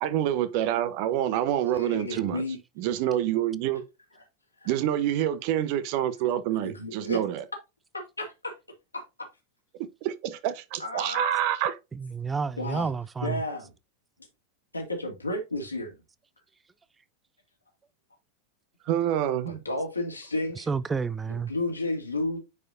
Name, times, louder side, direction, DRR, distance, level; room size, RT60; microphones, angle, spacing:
voice 1, 0.0-2.4 2.8-3.8 4.7-7.4 10.0-11.8 18.9-19.6, right 11 dB, 45° right, 0.9 m, -27 dB
voice 2, 1.7-2.6 4.6-4.7 6.6-7.2 7.9-8.5 8.9-9.0 10.8-11.2 12.6-12.9 13.2-13.7 14.7-16.0 19.4-20.7 21.3-22.4, left 2 dB, 80° left, 2.3 m, -32 dB
voice 3, 11.9-13.4 20.6-21.5, right 5 dB, 15° right, 0.3 m, -30 dB
9.6 x 4.8 x 2.6 m
figure-of-eight pair, 90°, 0 cm